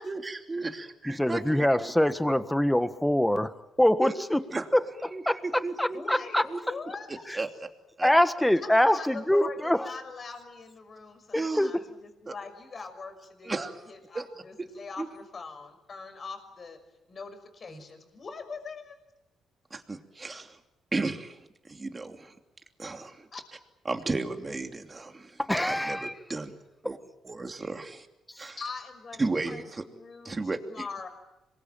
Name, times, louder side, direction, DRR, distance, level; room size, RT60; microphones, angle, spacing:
voice 1, 0.0-1.9 2.2-2.3 4.0-4.1 4.5-4.7 5.1-6.0 6.5-6.6 7.1-7.5 8.0-8.1 11.3-11.7 12.3-12.4 13.4-13.9 14.1-14.3 15.0-15.1 17.7-17.8 19.7-20.6 20.9-21.4 21.7-22.3 22.8-23.3 23.8-25.4 25.7-26.5 26.8-27.0 27.2-28.1 28.4-28.6 29.2-29.8 30.2-30.6, right 3 dB, 25° right, 5 dB, 2.9 m, -34 dB
voice 2, 1.1-3.5 3.8-4.4 4.7-4.8 5.2-5.4 5.8-6.4 7.3-7.4 8.0-9.9 11.3-11.8 25.5-26.1, left 1 dB, 5° left, 11 dB, 1.6 m, -24 dB
voice 3, 5.9-7.3 8.5-16.8 17.1-19.0 23.3-23.4 28.6-31.1, left 4 dB, 40° left, 7 dB, 6.1 m, -42 dB
26.5 x 22.0 x 9.1 m, 0.93 s
cardioid pair, 90°, 0 cm